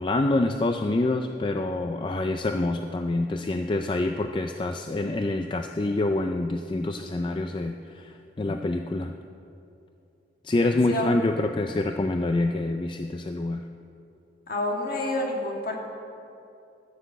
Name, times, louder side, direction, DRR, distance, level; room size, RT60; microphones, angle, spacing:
voice 1, 0.0-9.1 10.4-13.6, left 2 dB, 25° left, 6 dB, 0.4 m, -26 dB
voice 2, 14.5-15.8, left 1 dB, 55° left, 0 dB, 1.9 m, -28 dB
13.5 x 6.7 x 8.1 m, 2.6 s
head